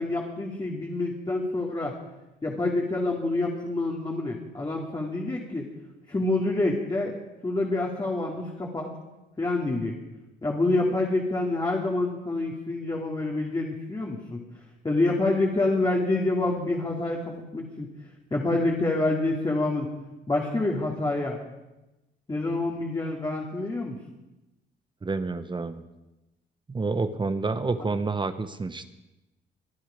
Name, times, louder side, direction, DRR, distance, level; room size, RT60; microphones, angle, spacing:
voice 1, 0.0-1.9 2.4-5.7 6.1-7.1 7.4-8.9 9.4-10.0 10.4-14.4 14.8-17.9 18.3-19.9 20.3-21.4 22.3-24.0, left 2 dB, 20° left, -2 dB, 2.5 m, -27 dB
voice 2, 25.0-25.8 26.7-28.9, right 3 dB, 25° right, 10 dB, 1.0 m, -29 dB
24.0 x 10.0 x 5.2 m, 1.0 s
cardioid pair, 90°, 20 cm